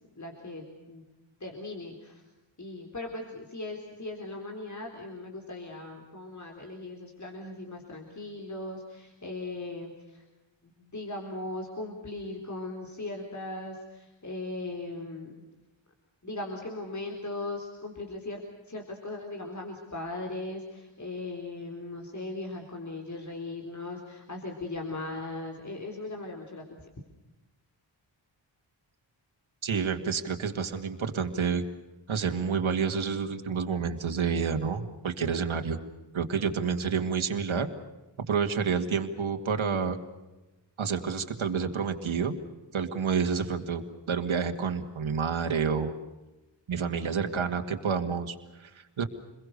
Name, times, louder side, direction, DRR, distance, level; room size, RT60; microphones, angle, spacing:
voice 1, 0.1-1.0 1.4-2.2 2.6-10.2 10.8-15.3 16.2-26.9, left 2 dB, 35° left, 1 dB, 4.2 m, -38 dB
voice 2, 29.6-31.6 32.1-35.8 36.1-37.7 38.3-40.0 40.8-42.4 42.7-45.9 46.7-49.0, right 6 dB, 90° right, 5 dB, 2.2 m, -29 dB
29.0 x 22.5 x 6.7 m, 1.1 s
wide cardioid pair, 80°, 47 cm